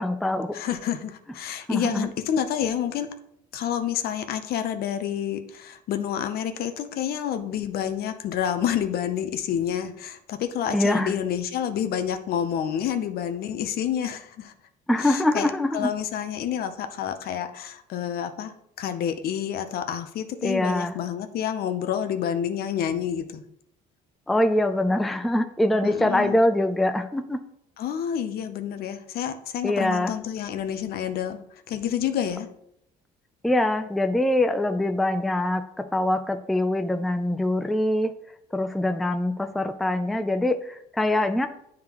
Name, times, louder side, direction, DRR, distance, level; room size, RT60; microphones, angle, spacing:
voice 1, 0.0-0.6 1.7-2.1 10.7-11.1 14.9-15.9 20.4-21.0 24.3-27.4 29.6-30.1 33.4-38.1 38.5-41.5, left 1 dB, ahead, 8 dB, 0.3 m, -24 dB
voice 2, 0.5-3.1 3.5-14.5 15.0-15.5 15.7-23.4 25.8-26.5 27.8-31.4 31.7-32.5, left 9 dB, 65° left, 9 dB, 0.6 m, -29 dB
9.5 x 3.7 x 2.9 m, 0.76 s
cardioid pair, 110°, 17 cm